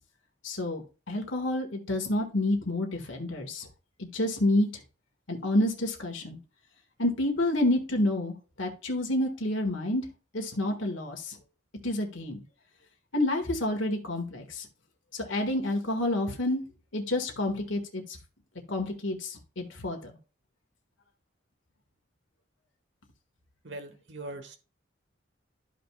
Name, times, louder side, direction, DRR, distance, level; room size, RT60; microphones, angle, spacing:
voice 1, 0.4-3.7 4.0-4.7 5.3-6.4 7.0-10.0 10.3-11.4 11.8-12.4 13.1-14.7 15.1-16.6 16.9-18.0 18.7-20.1, left 1 dB, 80° left, 3 dB, 1.6 m, -29 dB
voice 2, 23.6-24.6, right 2 dB, 65° right, 8 dB, 1.2 m, -41 dB
13.0 x 5.2 x 2.3 m, 0.32 s
head